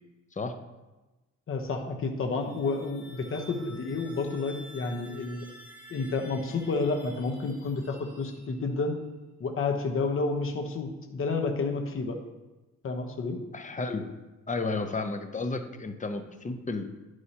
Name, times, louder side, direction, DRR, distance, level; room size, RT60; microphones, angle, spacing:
voice 1, 1.5-5.5 5.9-9.0 9.4-12.2 12.8-13.4, left 3 dB, 45° left, 3 dB, 1.0 m, -30 dB
sound 1, 2.3-8.9, equal, 5° right, 2.2 m, -51 dB
voice 2, 13.5-14.1 14.5-16.9, left 3 dB, 25° left, 7 dB, 0.7 m, -32 dB
11.0 x 4.7 x 2.9 m, 1.1 s
cardioid pair, 90°, 30 cm